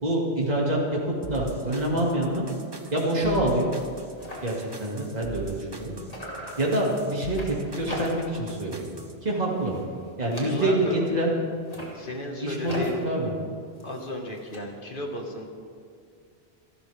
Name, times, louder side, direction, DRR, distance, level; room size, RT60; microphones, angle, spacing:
voice 1, 0.0-2.4 2.9-3.7 4.4-5.9 6.6-9.7 10.2-11.3 12.4-13.3, right 1 dB, 40° right, -3 dB, 2.5 m, -26 dB
sound 1, 1.2-9.1, right 2 dB, 25° right, 1.0 m, -42 dB
sound 2, 3.1-3.2 3.5-3.6 3.8-5.8 6.1-8.5 8.8-9.2 9.5-11.0 11.5-14.6, left 1 dB, 35° left, 3.0 m, -41 dB
voice 2, 10.2-11.0 11.9-13.0 13.8-15.5, equal, 55° left, 1 dB, 2.1 m, -34 dB
27.5 x 12.5 x 3.6 m, 2.3 s
omnidirectional pair, 1.1 m